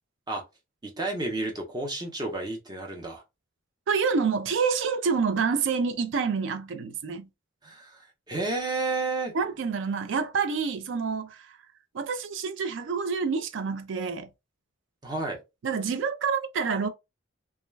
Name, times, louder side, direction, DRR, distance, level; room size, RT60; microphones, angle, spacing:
voice 1, 0.8-3.2 7.6-9.3 15.0-15.4, right 2 dB, 20° right, 0.6 m, -31 dB
voice 2, 3.9-7.3 9.3-11.5 11.9-14.3 15.6-16.9, right 5 dB, 65° right, 0.4 m, -27 dB
2.3 x 2.2 x 3.1 m
head